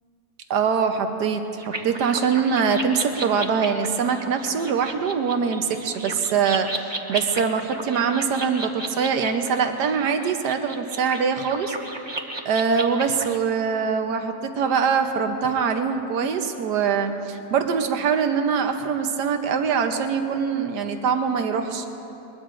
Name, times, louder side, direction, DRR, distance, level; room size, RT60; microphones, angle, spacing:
voice 1, 0.5-11.8 12.4-21.8, right 6 dB, 90° right, 6 dB, 1.4 m, -23 dB
sound 1, 1.6-13.4, right 2 dB, 25° right, 0.6 m, -34 dB
22.0 x 21.0 x 2.6 m, 3.0 s
omnidirectional pair, 1.7 m